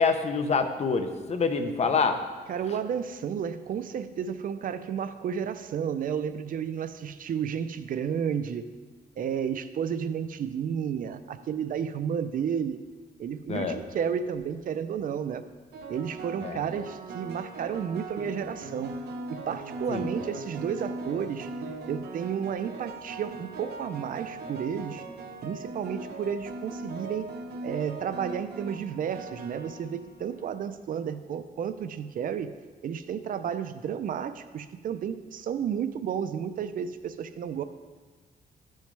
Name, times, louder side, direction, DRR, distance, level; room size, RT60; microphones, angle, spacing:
voice 1, 0.0-2.2 13.5-13.8 16.4-16.6 19.9-20.1, left 5 dB, 40° left, 7 dB, 0.8 m, -26 dB
voice 2, 2.5-8.7 9.2-12.8 13.2-15.4 15.9-18.9 19.3-21.5 21.9-25.0 25.4-27.3 27.6-32.5 32.8-37.6, right 8 dB, 60° right, 12 dB, 0.5 m, -32 dB
sound 1, 14.1-14.5 15.7-30.6, right 2 dB, 85° right, 0.8 m, -40 dB
13.5 x 6.4 x 3.3 m, 1.4 s
cardioid pair, 120°, 16 cm